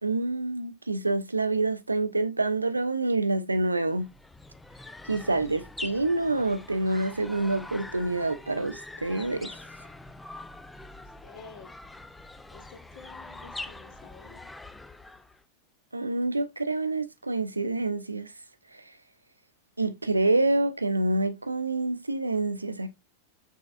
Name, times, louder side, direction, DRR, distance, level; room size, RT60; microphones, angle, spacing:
voice 1, 0.0-4.1 5.1-9.6 15.9-18.3 18.7-18.9 19.8-22.9, right 2 dB, 80° right, 0.5 m, -27 dB
sound 1, 3.9-15.4, left 2 dB, 5° left, 0.3 m, -44 dB
voice 2, 11.0-11.7 12.5-14.5, left 6 dB, 50° left, 1.2 m, -50 dB
6.2 x 3.2 x 2.5 m
figure-of-eight pair, 90°, 0 cm